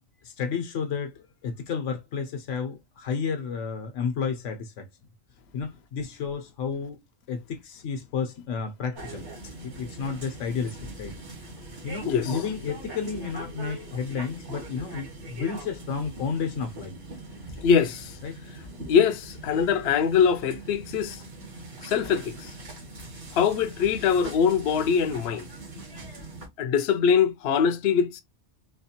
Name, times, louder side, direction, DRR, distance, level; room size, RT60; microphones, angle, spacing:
voice 1, 0.2-4.9 5.5-7.0 7.3-9.3 9.6-11.1 11.8-17.0 18.2-18.4, left 6 dB, 85° left, 1.2 m, -31 dB
sound 1, 8.9-26.5, right 2 dB, 70° right, 1.8 m, -41 dB
voice 2, 12.1-12.4 17.6-18.2 18.9-21.2 21.8-22.5 23.3-25.5 26.6-28.2, left 7 dB, 65° left, 0.8 m, -23 dB
4.3 x 2.4 x 2.8 m
omnidirectional pair, 1.2 m